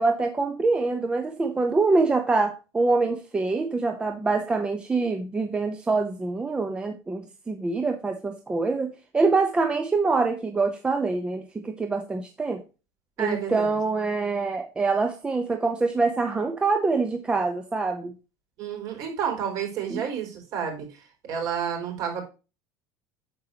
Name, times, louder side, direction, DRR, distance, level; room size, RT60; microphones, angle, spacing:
voice 1, 0.0-12.6 13.2-18.1 19.9-20.0, right 3 dB, 10° right, 5 dB, 0.9 m, -25 dB
voice 2, 13.2-13.8 18.6-22.2, right 8 dB, 50° right, 3 dB, 4.3 m, -30 dB
9.2 x 7.3 x 2.9 m, 0.30 s
cardioid pair, 165°, 8 cm